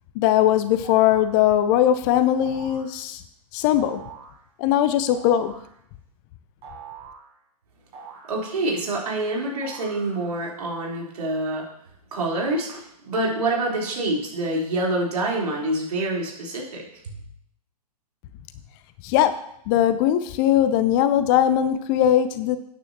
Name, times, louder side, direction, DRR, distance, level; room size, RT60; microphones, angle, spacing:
voice 1, 0.2-3.2 3.5-4.0 4.6-5.5 19.0-19.4 19.7-22.6, left 11 dB, 35° left, 12 dB, 0.6 m, -20 dB
sound 1, 0.8-1.4 2.4-2.9 3.8-4.4 5.1-5.7 6.6-7.3 7.9-8.9 9.6-10.4, right 5 dB, 25° right, 4.8 m, -43 dB
voice 2, 8.3-11.6 12.1-17.2, right 2 dB, 65° right, -3 dB, 4.2 m, -26 dB
14.0 x 9.3 x 3.0 m, 0.73 s
figure-of-eight pair, 115°, 21 cm